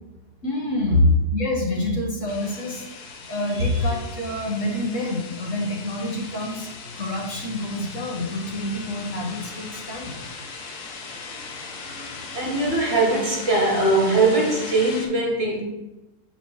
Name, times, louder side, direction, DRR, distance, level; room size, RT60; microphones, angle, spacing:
voice 1, 0.4-10.2, left 1 dB, 50° left, -1 dB, 1.6 m, -29 dB
sound 1, 2.3-15.1, left 4 dB, 75° left, 1.4 m, -38 dB
voice 2, 3.4-3.9 11.8-15.6, right 2 dB, 45° right, -2 dB, 1.8 m, -22 dB
7.7 x 4.5 x 4.7 m, 1.0 s
omnidirectional pair, 1.7 m